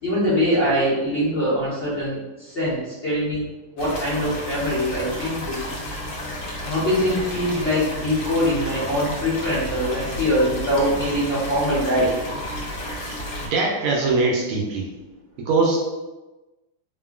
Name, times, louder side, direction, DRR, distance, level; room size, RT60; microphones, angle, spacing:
voice 1, 0.0-3.5 3.7-5.6 6.6-12.1, equal, 45° left, -11 dB, 1.0 m, -23 dB
sound 1, 3.8-13.5, left 1 dB, 65° left, 1.2 m, -32 dB
voice 2, 13.4-14.9 15.4-15.9, right 3 dB, 75° right, -2 dB, 1.3 m, -22 dB
3.5 x 2.1 x 2.3 m, 1.1 s
omnidirectional pair, 2.4 m